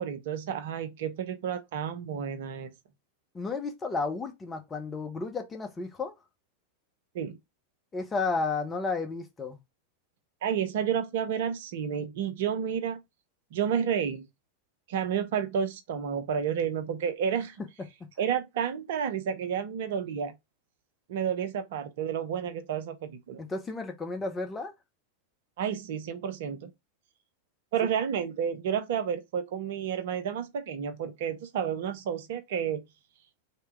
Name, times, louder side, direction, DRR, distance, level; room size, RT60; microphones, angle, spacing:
voice 1, 0.0-2.7 7.1-7.4 10.4-13.0 13.5-14.3 14.9-17.6 18.2-20.3 21.1-23.4 25.6-26.7 27.7-32.8, right 8 dB, 55° right, 0.6 m, -31 dB
voice 2, 3.3-6.1 7.9-9.6 23.4-24.7 27.8-27.9, left 4 dB, 15° left, 0.9 m, -32 dB
3.3 x 2.9 x 4.6 m
figure-of-eight pair, 90°, 0 cm